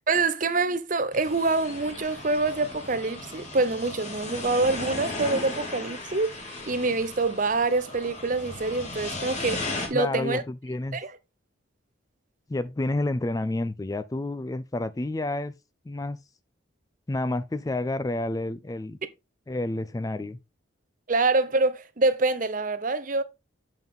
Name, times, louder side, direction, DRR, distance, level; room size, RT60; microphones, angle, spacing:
voice 1, 0.1-6.3 6.7-9.6 9.9-10.4 10.9-11.1 21.1-23.2, right 3 dB, 40° right, 0.7 m, -25 dB
sound 1, 1.1-9.9, left 2 dB, 35° left, 2.5 m, -36 dB
voice 2, 9.9-11.0 12.5-15.5 15.9-16.2 17.1-19.0 19.5-20.4, left 2 dB, 15° left, 0.3 m, -29 dB
8.0 x 5.4 x 3.5 m
head